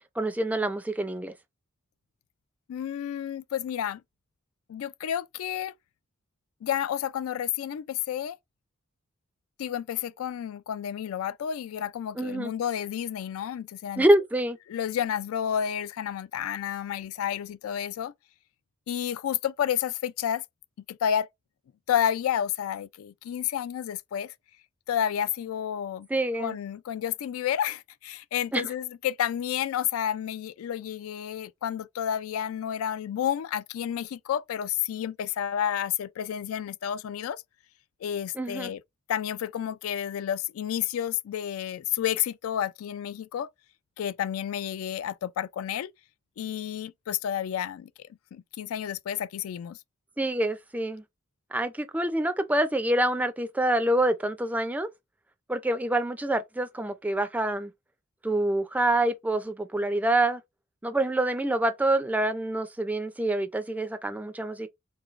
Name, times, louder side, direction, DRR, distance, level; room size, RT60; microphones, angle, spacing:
voice 1, 0.2-1.3 12.2-12.5 14.0-14.6 26.1-26.6 28.5-28.7 38.4-38.7 50.2-51.0 51.5-54.9 55.5-57.7 58.2-60.4 60.8-64.7, right 1 dB, 5° right, 0.3 m, -26 dB
voice 2, 2.7-4.0 4.7-5.7 6.6-8.4 9.6-14.1 14.7-18.1 18.9-20.4 20.9-21.3 21.9-24.3 24.9-26.1 26.4-37.4 38.0-38.8 39.1-43.5 44.0-45.9 46.4-47.9 48.3-49.8, left 9 dB, 90° left, 0.3 m, -30 dB
3.8 x 3.1 x 2.4 m
head